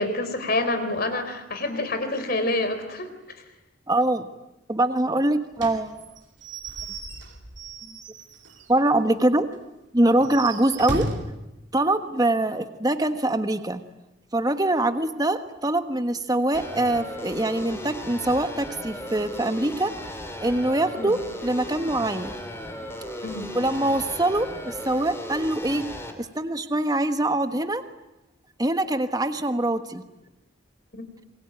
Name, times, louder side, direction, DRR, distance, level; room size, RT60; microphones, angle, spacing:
voice 1, 0.0-3.1 21.0-21.1 23.2-23.5 30.9-31.0, left 2 dB, 50° left, 9 dB, 4.0 m, -27 dB
voice 2, 3.9-4.3 4.7-6.0 7.8-8.0 8.7-9.5 9.9-11.1 11.7-13.8 14.3-19.9 20.4-22.3 23.5-25.8 26.2-27.8 28.6-30.0, right 1 dB, 20° right, 9 dB, 1.3 m, -23 dB
Slam / Squeak / Wood, 5.6-8.8 9.1-9.2 9.5-9.6 10.1-11.4, right 2 dB, 65° right, 2.7 m, -35 dB
sound 1, 16.5-26.1, left 1 dB, 15° left, 2.9 m, -36 dB
26.5 x 23.5 x 9.2 m, 0.94 s
head